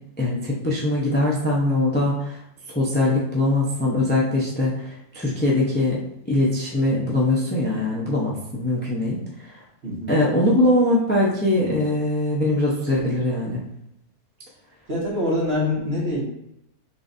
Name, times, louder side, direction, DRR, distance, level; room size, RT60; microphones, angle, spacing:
voice 1, 0.2-2.4 2.7-6.0 6.3-9.5 10.1-13.6, left 1 dB, 10° left, -5 dB, 0.5 m, -22 dB
voice 2, 9.8-10.1 14.9-16.2, left 1 dB, 45° right, -5 dB, 1.6 m, -24 dB
4.1 x 3.7 x 2.6 m, 0.80 s
omnidirectional pair, 1.5 m